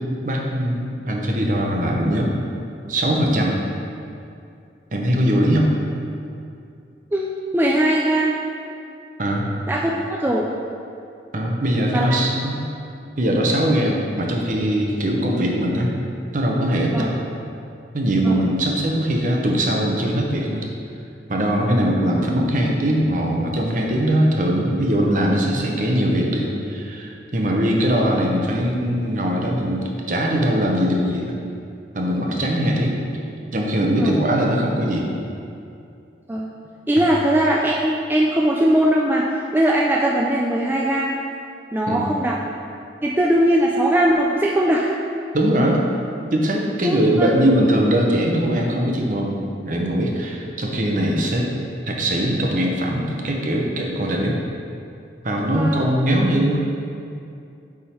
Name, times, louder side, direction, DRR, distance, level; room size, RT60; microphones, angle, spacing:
voice 1, 0.2-2.3 2.9-3.6 4.9-5.7 9.2-9.5 11.3-12.6 13.2-15.9 16.3-17.1 17.9-20.7 21.3-31.3 31.9-33.0 33.5-35.1 37.0-37.1 41.9-42.1 45.3-45.8 46.3-51.5 51.8-54.4 55.2-56.6, equal, 45° right, 0 dB, 0.8 m, -21 dB
voice 2, 7.5-8.4 9.7-10.5 11.9-12.5 16.9-17.1 18.2-18.5 27.5-27.6 34.0-34.2 36.3-36.5 36.9-41.1 41.7-42.4 43.0-44.9 46.8-47.3 55.6-55.9, right 1 dB, 10° right, -3 dB, 0.3 m, -20 dB
8.4 x 3.7 x 4.4 m, 2.5 s
head